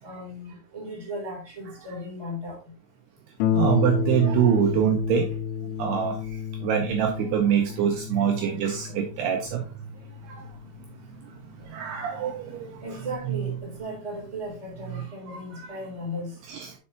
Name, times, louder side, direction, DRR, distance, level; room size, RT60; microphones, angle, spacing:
voice 1, 0.0-2.7 12.8-16.4, equal, 10° right, -3 dB, 2.4 m, -36 dB
Harp, 3.4-12.6 13.4-13.5 14.0-14.1, left 8 dB, 80° left, 2.8 m, -31 dB
voice 2, 3.5-5.3 5.8-6.2 6.6-9.7 10.2-10.5 11.6-13.4 14.9-15.8 16.5-16.8, right 9 dB, 85° right, 3 dB, 2.4 m, -25 dB
9.7 x 5.4 x 2.9 m, 0.35 s
omnidirectional pair, 5.6 m